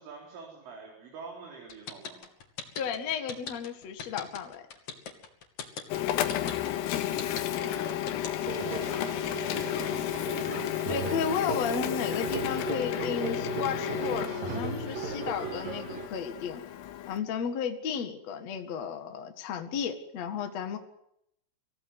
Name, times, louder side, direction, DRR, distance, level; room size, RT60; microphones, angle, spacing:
voice 1, 0.0-2.3 7.3-10.1, right 5 dB, 70° right, 0 dB, 6.5 m, -46 dB
sound 1, 1.7-8.6, left 6 dB, 45° left, 3.2 m, -39 dB
voice 2, 2.8-4.6 6.9-7.2 10.9-16.6 17.1-20.8, left 7 dB, 65° left, 6 dB, 1.7 m, -33 dB
Printer, 5.9-17.2, left 12 dB, 80° left, 4.2 m, -32 dB
sound 2, 8.4-16.1, right 5 dB, 50° right, 3.6 m, -37 dB
25.5 x 16.5 x 9.7 m, 0.78 s
omnidirectional pair, 5.9 m